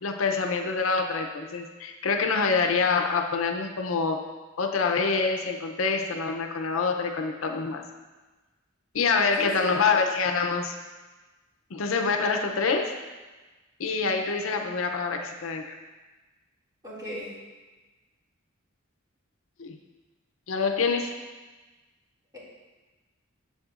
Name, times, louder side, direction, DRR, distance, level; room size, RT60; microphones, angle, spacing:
voice 1, 0.0-4.2 4.6-7.8 8.9-10.7 11.7-12.9 13.8-15.6 19.6-19.8 20.5-21.1, left 4 dB, 75° left, 4 dB, 0.6 m, -26 dB
voice 2, 9.4-10.0 16.8-17.3 22.3-22.4, equal, 20° right, -8 dB, 2.3 m, -36 dB
7.9 x 7.3 x 2.5 m, 1.2 s
head